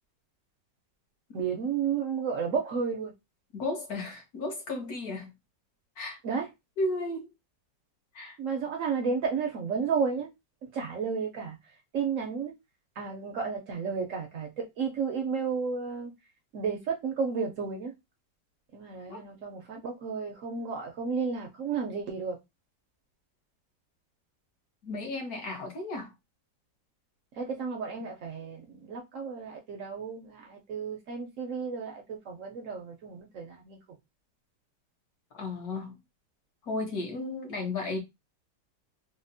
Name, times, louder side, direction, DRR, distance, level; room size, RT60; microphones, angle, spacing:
voice 1, 1.3-3.1 6.2-6.5 8.4-10.3 10.6-11.6 11.9-12.5 13.0-16.1 16.5-17.9 18.7-22.4 27.3-33.8, right 5 dB, 70° right, 0.7 m, -32 dB
voice 2, 3.5-5.3 6.0-6.2 6.8-7.3 8.1-8.4 19.1-19.2 24.8-26.1 35.3-36.0 36.6-38.0, left 2 dB, 60° left, 1.3 m, -34 dB
4.1 x 2.1 x 2.6 m
omnidirectional pair, 2.0 m